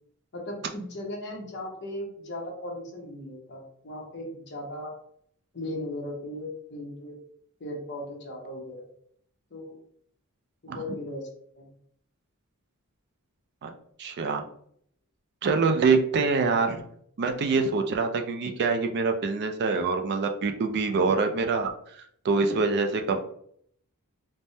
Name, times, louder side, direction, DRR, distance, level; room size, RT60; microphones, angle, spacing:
voice 1, 0.3-4.9 5.5-7.1 7.6-8.8 9.5-9.8 10.6-11.3 11.5-11.7, left 1 dB, 50° left, -1 dB, 0.9 m, -37 dB
voice 2, 14.0-14.5 15.4-16.8 17.2-23.2, right 4 dB, 50° right, 6 dB, 0.4 m, -25 dB
3.3 x 2.1 x 2.7 m, 0.66 s
head